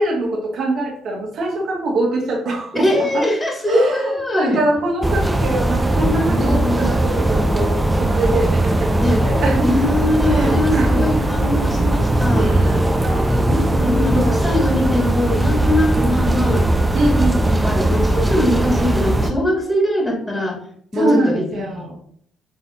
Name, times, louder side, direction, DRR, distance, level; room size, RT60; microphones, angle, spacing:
voice 1, 0.0-3.3 3.7-9.7 10.2-11.0 12.3-14.7 16.9-17.9 20.9-22.0, right 2 dB, 60° right, -2 dB, 2.1 m, -24 dB
voice 2, 2.7-4.6 6.1-6.9 9.0-9.2 9.6-12.5 13.5-16.7 17.6-20.6 20.9-22.0, left 1 dB, 15° left, 1 dB, 3.2 m, -21 dB
sound 1, 5.0-19.3, right 1 dB, 15° right, 1.0 m, -18 dB
8.0 x 4.0 x 4.2 m, 0.63 s
hypercardioid pair, 45°, 0 cm